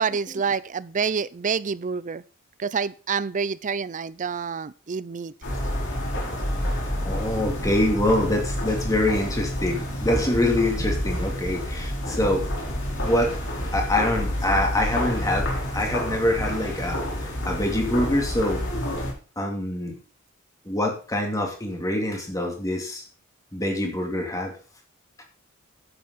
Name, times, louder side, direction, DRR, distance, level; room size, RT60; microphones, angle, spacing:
voice 1, 0.0-2.2 2.6-5.3, right 5 dB, 35° right, 19 dB, 0.5 m, -27 dB
sound 1, 5.4-19.1, left 1 dB, 60° left, 4.1 m, -28 dB
voice 2, 7.0-12.4 13.0-13.3 13.7-18.6 19.4-20.0 20.6-23.0 23.5-24.5, left 1 dB, 15° left, 1 dB, 3.0 m, -25 dB
11.5 x 9.2 x 4.1 m, 0.36 s
head